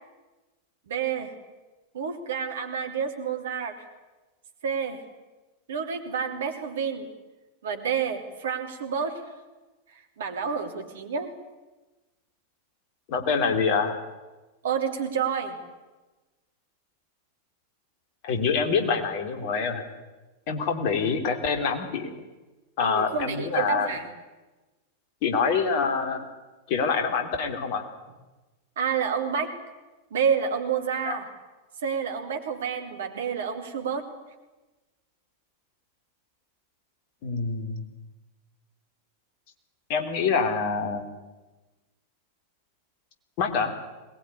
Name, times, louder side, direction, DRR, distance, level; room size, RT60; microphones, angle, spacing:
voice 1, 0.9-1.3 1.9-3.8 4.6-5.0 5.7-7.1 7.6-9.2 10.2-11.3 14.6-15.6 22.8-24.1 28.8-29.5 30.1-31.3 31.8-34.0, right 7 dB, 60° right, 5 dB, 3.2 m, -29 dB
voice 2, 13.1-13.9 18.2-19.9 20.5-22.1 22.8-23.9 25.2-26.2 26.7-27.9 31.0-31.2 37.2-37.8 39.9-41.1 43.4-43.7, left 5 dB, 45° left, 6 dB, 3.3 m, -26 dB
22.0 x 20.0 x 9.9 m, 1.2 s
figure-of-eight pair, 90°, 0 cm